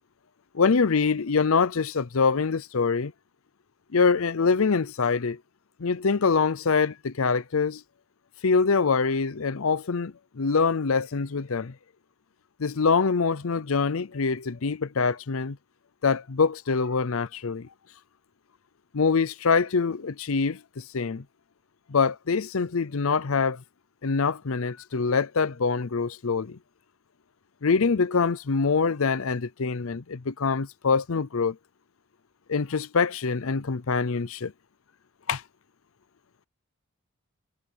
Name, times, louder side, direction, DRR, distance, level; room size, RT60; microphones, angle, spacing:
voice 1, 0.5-3.1 3.9-5.4 5.8-7.8 8.4-11.7 12.6-15.6 16.0-17.7 18.9-21.2 21.9-23.6 24.0-26.6 27.6-31.6 32.5-34.5 35.3-35.4, left 5 dB, 70° left, 0.6 m, -24 dB
head